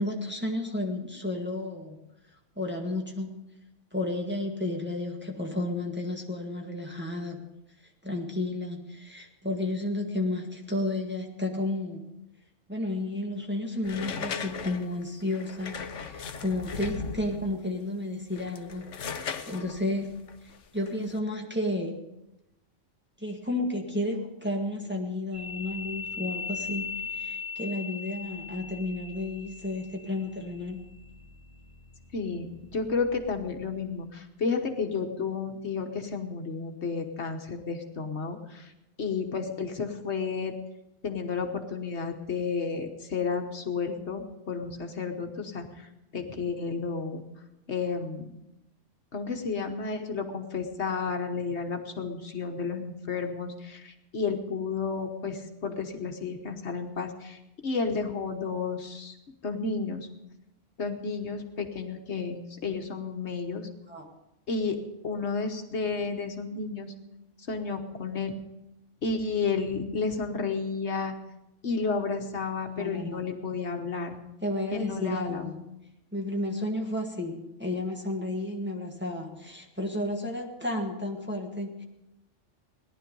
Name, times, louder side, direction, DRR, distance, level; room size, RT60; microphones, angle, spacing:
voice 1, 0.0-2.0 2.6-3.3 3.9-7.4 8.0-12.0 12.7-18.9 19.5-20.1 20.7-22.0 23.2-30.8 63.9-64.1 72.7-73.2 74.4-75.6 76.1-81.8, left 1 dB, 10° right, 0 dB, 1.7 m, -32 dB
sound 1, 13.8-17.5 18.2-21.2, left 6 dB, 80° left, 1.2 m, -38 dB
sound 2, 25.3-33.9, left 5 dB, 75° right, 5.0 m, -40 dB
voice 2, 32.1-38.7 39.0-40.5 41.0-45.9 46.1-47.2 47.7-48.4 49.1-59.2 59.4-60.0 60.8-63.7 64.5-64.8 65.0-66.9 67.5-68.3 69.0-71.1 71.6-74.2 74.7-75.5, left 4 dB, 65° left, 5 dB, 1.5 m, -32 dB
18.0 x 11.0 x 5.4 m, 0.91 s
omnidirectional pair, 1.3 m